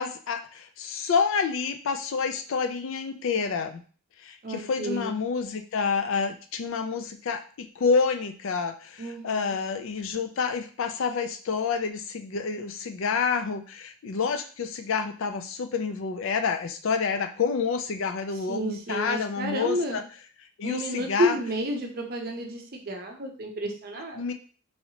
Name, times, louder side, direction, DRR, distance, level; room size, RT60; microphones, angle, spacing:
voice 1, 0.0-3.8 4.2-20.0 20.6-21.4 24.2-24.3, left 5 dB, 65° left, 7 dB, 0.4 m, -28 dB
voice 2, 4.4-5.2 9.0-9.5 18.5-20.0 20.6-24.3, equal, 45° right, 3 dB, 0.6 m, -31 dB
3.1 x 2.8 x 2.8 m, 0.40 s
head